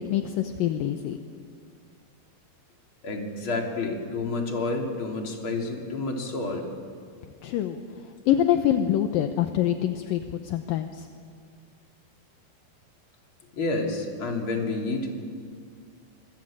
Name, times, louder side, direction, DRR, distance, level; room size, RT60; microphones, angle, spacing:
voice 1, 0.1-1.2 7.4-7.8 8.3-11.1, left 11 dB, 75° left, 6 dB, 2.5 m, -25 dB
voice 2, 3.0-6.6 13.5-15.1, left 3 dB, 35° left, 1 dB, 3.6 m, -29 dB
26.5 x 22.5 x 8.9 m, 2.2 s
omnidirectional pair, 4.4 m